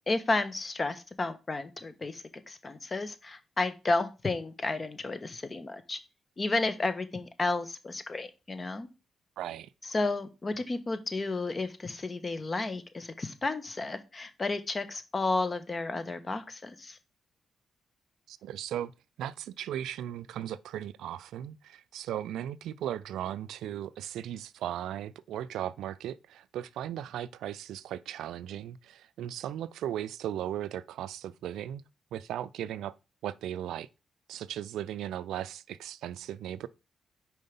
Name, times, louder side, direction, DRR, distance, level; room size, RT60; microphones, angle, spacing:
voice 1, 0.1-6.0 6.4-8.9 9.8-17.0, left 3 dB, 40° left, 1.2 m, -32 dB
voice 2, 9.4-9.7 18.3-18.9 19.2-31.8 32.1-32.9 33.2-33.9 34.3-36.7, right 11 dB, 80° right, 0.3 m, -37 dB
5.4 x 4.7 x 5.3 m
supercardioid pair, 50°, 0 cm